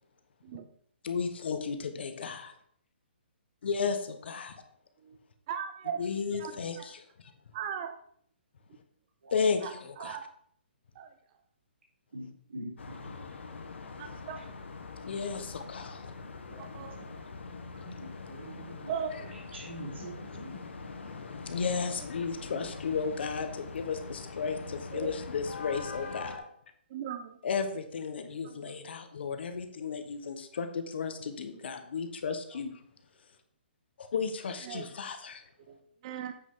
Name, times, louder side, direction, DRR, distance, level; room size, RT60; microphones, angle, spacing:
voice 1, 1.0-2.5 3.6-4.6 6.0-7.0 9.3-10.2 15.1-16.1 21.4-26.4 27.4-32.7 34.0-35.4, left 5 dB, 65° left, 7 dB, 1.2 m, -34 dB
voice 2, 5.5-6.0 6.3-6.9 7.5-7.9 9.6-10.3 11.0-11.1 14.0-14.4 16.8-16.9 18.9-19.4 22.5-22.6 24.9-25.1 26.9-27.4 28.4-28.7 34.7-34.8 35.7-35.8 36.0-36.3, right 8 dB, 35° right, 7 dB, 0.5 m, -38 dB
voice 3, 12.1-12.7 13.0-13.1 14.4-14.5 16.5-16.6 18.0-20.6 21.2-21.3, right 1 dB, 80° right, -4 dB, 3.8 m, -44 dB
sound 1, 12.8-26.4, left 4 dB, 85° left, 1.3 m, -43 dB
8.3 x 6.1 x 3.7 m, 0.64 s
hypercardioid pair, 155°, 6 cm